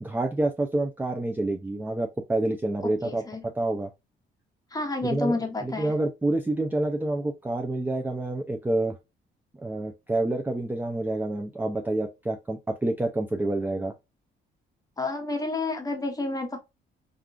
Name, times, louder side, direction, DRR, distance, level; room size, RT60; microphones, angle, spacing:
voice 1, 0.0-3.2 3.6-3.9 5.0-9.0 9.6-13.9, right 2 dB, 10° right, 0.4 m, -28 dB
voice 2, 2.8-3.4 4.7-5.9 15.0-16.6, left 2 dB, 20° left, 0.9 m, -30 dB
3.4 x 2.5 x 2.3 m
cardioid pair, 90°, 20 cm